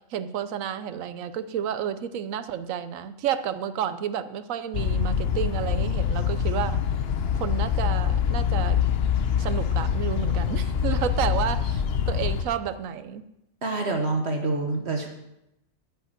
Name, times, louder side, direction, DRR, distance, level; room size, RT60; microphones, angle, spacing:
voice 1, 0.1-6.8 7.4-8.8 9.4-13.2, right 9 dB, 90° right, 12 dB, 1.1 m, -31 dB
sound 1, 4.7-12.4, left 8 dB, 55° left, 0.9 m, -25 dB
voice 2, 13.6-15.1, right 3 dB, 55° right, 4 dB, 1.4 m, -26 dB
8.7 x 7.5 x 8.9 m, 0.86 s
omnidirectional pair, 1.3 m